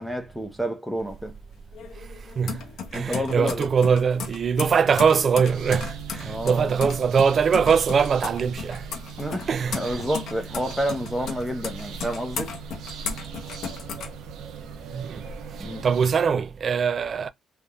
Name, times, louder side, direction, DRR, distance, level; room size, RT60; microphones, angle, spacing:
voice 1, 0.0-1.3 2.9-3.7 6.3-6.8 9.2-12.5 15.6-15.9, equal, 5° left, 0.7 m, -29 dB
sound 1, 1.0-14.8 15.2-16.1, left 6 dB, 75° left, 0.8 m, -36 dB
voice 2, 2.9-8.9 9.5-10.0 14.9-15.2 15.8-17.3, right 6 dB, 50° right, 0.3 m, -22 dB
sound 2, 5.4-16.1, right 6 dB, 85° right, 0.6 m, -39 dB
3.4 x 2.6 x 2.3 m
cardioid pair, 90°, 0 cm